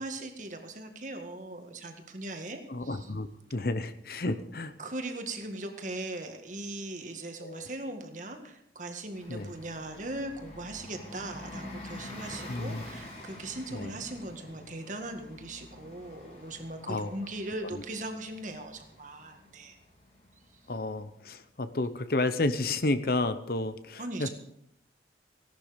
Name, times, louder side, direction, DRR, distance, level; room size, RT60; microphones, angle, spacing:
voice 1, 0.0-3.1 4.8-19.8 24.0-24.3, right 2 dB, 45° right, 5 dB, 1.8 m, -39 dB
voice 2, 2.7-4.7 7.4-7.7 9.3-9.5 12.5-12.8 13.7-13.9 16.9-17.1 17.7-17.8 20.7-24.3, left 2 dB, 55° left, 12 dB, 0.8 m, -31 dB
Bus, 9.1-21.4, left 1 dB, 35° left, 3.9 m, -47 dB
16.5 x 12.0 x 5.1 m, 0.77 s
head